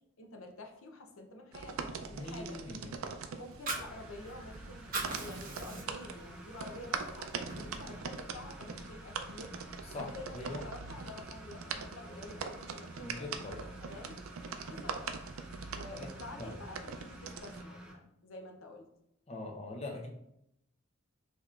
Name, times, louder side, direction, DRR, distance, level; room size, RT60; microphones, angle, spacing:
voice 1, 0.2-2.6 3.3-4.9 5.2-9.5 9.9-13.3 13.8-14.2 14.6-15.0 15.7-18.9, left 2 dB, 75° left, 3 dB, 0.6 m, -49 dB
sound 1, 1.5-17.6, right 5 dB, 80° right, 0.4 m, -43 dB
voice 2, 2.1-2.9 9.9-10.6 13.0-13.7 15.9-16.1 16.4-16.5 19.3-20.1, left 2 dB, 30° left, 0 dB, 0.7 m, -42 dB
Fire, 3.4-4.5 4.8-6.2 6.6-6.7 7.1-8.1, right 3 dB, 40° right, 0.9 m, -39 dB
sound 2, 3.6-17.9, right 1 dB, 5° right, 0.5 m, -51 dB
5.5 x 2.9 x 2.4 m, 0.80 s
head